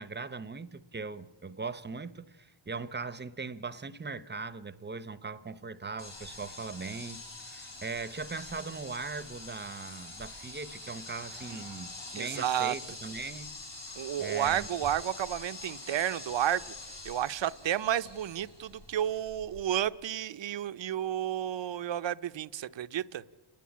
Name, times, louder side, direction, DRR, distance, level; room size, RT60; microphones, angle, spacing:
voice 1, 0.0-13.6 14.2-14.7, right 4 dB, 20° right, 0.8 m, -40 dB
sound 1, 6.0-19.9, left 2 dB, 55° left, 6.8 m, -45 dB
voice 2, 12.1-12.7 14.0-16.7 17.0-23.2, right 11 dB, 60° right, 0.7 m, -31 dB
29.5 x 10.5 x 8.5 m
cardioid pair, 70°, 50 cm